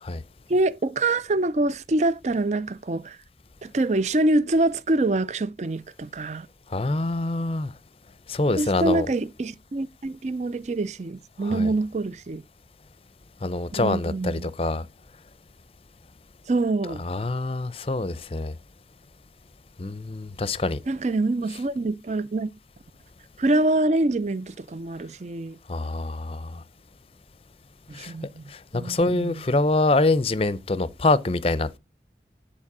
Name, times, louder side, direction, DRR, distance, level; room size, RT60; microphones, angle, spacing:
voice 1, 0.5-3.2 3.6-6.5 8.6-12.4 13.7-14.5 16.5-17.0 20.9-22.5 23.4-25.6 27.9-29.4, right 2 dB, 40° right, 0.5 m, -25 dB
voice 2, 6.7-7.7 8.3-9.1 11.4-11.7 13.4-14.9 17.0-18.5 19.8-20.8 25.7-26.6 27.9-28.1 28.5-31.8, left 2 dB, 30° left, 0.6 m, -25 dB
10.0 x 4.3 x 6.0 m
head